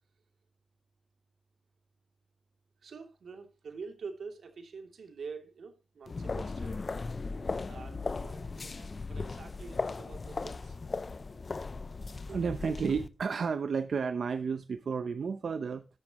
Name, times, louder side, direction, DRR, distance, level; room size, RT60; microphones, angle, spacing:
voice 1, 2.8-6.7 7.7-10.8, right 5 dB, 85° right, 2.7 m, -46 dB
sound 1, 6.1-13.1, left 3 dB, 35° left, 0.5 m, -37 dB
voice 2, 12.3-15.9, right 5 dB, 65° right, 0.7 m, -32 dB
13.5 x 12.0 x 3.0 m
wide cardioid pair, 170°, 0 cm